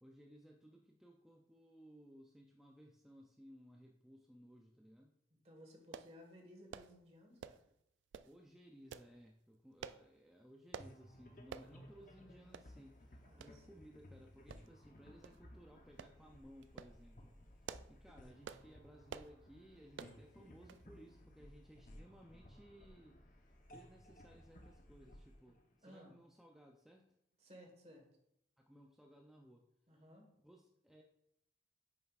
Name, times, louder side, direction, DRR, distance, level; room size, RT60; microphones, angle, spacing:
voice 1, 0.0-5.2 8.2-27.1 28.6-29.6 30.4-31.0, equal, 5° right, 0 dB, 0.4 m, -60 dB
voice 2, 5.4-7.6 13.2-13.8 25.8-26.1 27.4-28.1 29.9-30.3, equal, 35° right, 2 dB, 1.4 m, -59 dB
sound 1, 5.9-6.1 6.7-6.9 7.4-7.7 8.1-8.3 8.9-9.1 9.8-10.0 10.7-10.9 11.5-11.7 12.1-12.2 12.5-12.7 13.4-13.6 14.5-14.9 15.2-15.4 16.0-16.2 16.6-17.0 17.5-18.0 18.4-18.7 19.1-19.3 20.0-20.2 20.7-20.9 21.2-21.3, right 7 dB, 85° right, 0.3 m, -49 dB
sound 2, 10.8-26.4, left 1 dB, 45° left, 0.8 m, -59 dB
8.7 x 6.6 x 2.4 m, 0.77 s
head